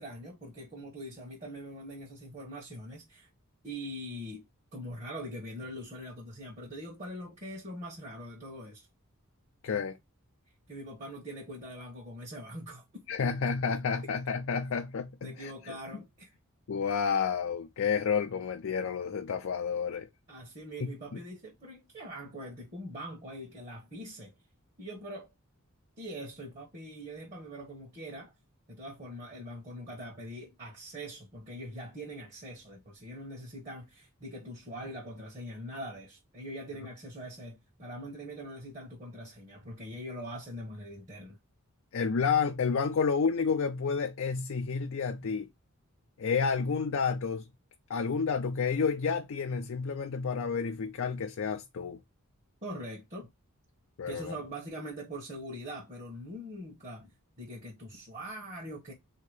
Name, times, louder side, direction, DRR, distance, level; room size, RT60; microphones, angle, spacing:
voice 1, 0.0-3.3 3.6-4.5 4.7-8.9 10.7-13.0 15.2-16.3 20.3-24.3 24.8-25.3 26.0-28.3 28.7-41.4 52.6-53.3 54.1-57.1 57.4-58.9, equal, 35° right, 1.1 m, -43 dB
voice 2, 9.6-10.0 13.1-15.8 16.7-20.1 20.8-20.9 41.9-45.5 46.2-47.5 47.9-52.0 54.0-54.3, left 5 dB, 60° left, 0.4 m, -30 dB
3.7 x 2.8 x 4.8 m
head